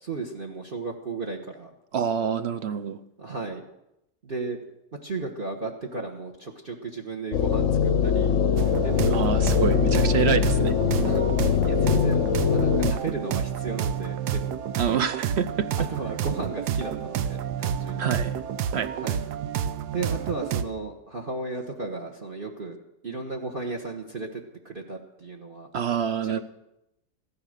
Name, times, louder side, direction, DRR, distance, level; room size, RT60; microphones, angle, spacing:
voice 1, 0.0-1.7 3.2-3.6 4.2-4.6 5.0-10.6 11.0-14.6 15.8-18.2 19.0-19.2 19.9-22.8 23.0-25.7 26.2-26.4, right 3 dB, 35° right, 3 dB, 1.4 m, -35 dB
voice 2, 1.9-3.0 9.1-10.7 14.8-15.7 18.0-18.3 18.7-18.9 25.7-26.4, right 7 dB, 50° right, 12 dB, 0.8 m, -26 dB
sound 1, 7.3-12.9, left 7 dB, 60° left, 0.9 m, -22 dB
sound 2, 8.6-20.6, right 8 dB, 85° right, 1.3 m, -29 dB
16.0 x 13.5 x 6.6 m, 0.86 s
omnidirectional pair, 1.7 m